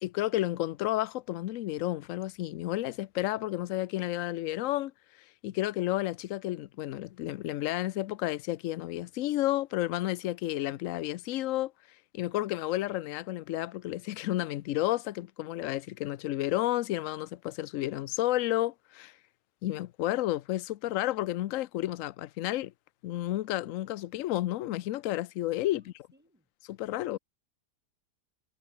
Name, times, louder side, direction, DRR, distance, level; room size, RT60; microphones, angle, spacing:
voice 1, 0.0-4.9 5.4-11.7 12.1-19.1 19.6-22.7 23.0-25.9 26.7-27.2, left 15 dB, 65° left, 0.8 m, -31 dB
voice 2, 25.7-26.5 27.0-27.2, right 1 dB, 5° right, 5.6 m, -65 dB
omnidirectional pair, 1.8 m